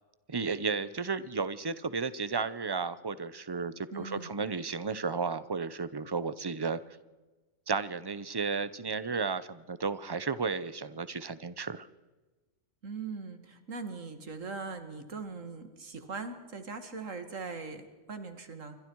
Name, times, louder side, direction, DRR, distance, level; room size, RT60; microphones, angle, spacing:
voice 1, 0.3-6.8 7.7-11.9, right 4 dB, 25° right, 15 dB, 0.6 m, -33 dB
voice 2, 3.9-4.3 12.8-18.8, right 4 dB, 70° right, 8 dB, 2.4 m, -40 dB
28.0 x 23.5 x 4.7 m, 1.2 s
omnidirectional pair, 1.4 m